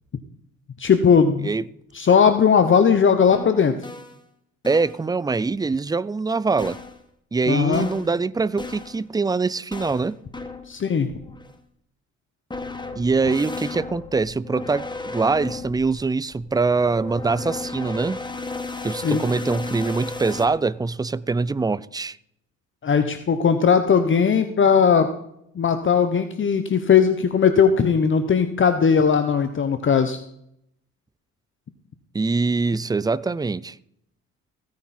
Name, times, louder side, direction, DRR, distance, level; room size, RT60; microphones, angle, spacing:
voice 1, 0.8-1.5 1.9-3.7 7.5-7.9 10.7-11.1 19.0-19.2 22.8-25.1 25.5-30.2, left 6 dB, 40° left, 1.1 m, -18 dB
sound 1, 3.3-4.2 4.6-5.0 6.6-7.0 7.7-8.2 8.6-9.0 9.7-10.7 11.1-11.5 12.5-20.5, left 3 dB, 15° left, 1.6 m, -35 dB
voice 2, 4.7-6.8 7.3-10.2 13.0-18.2 18.8-22.2 32.1-33.8, right 4 dB, 15° right, 0.4 m, -23 dB
16.0 x 9.5 x 4.4 m
cardioid pair, 90°, 30 cm